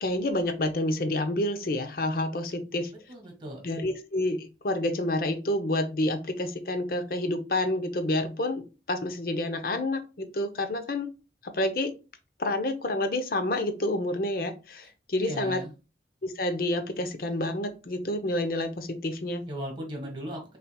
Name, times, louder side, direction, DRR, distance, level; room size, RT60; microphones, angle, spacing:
voice 1, 0.0-2.9 3.6-11.1 11.4-11.9 12.4-15.6 16.2-19.4, left 1 dB, 55° left, 9 dB, 0.7 m, -29 dB
voice 2, 3.1-3.6 15.1-15.7 19.5-20.6, right 1 dB, 25° right, 2 dB, 1.5 m, -37 dB
5.7 x 3.3 x 2.2 m, 0.31 s
head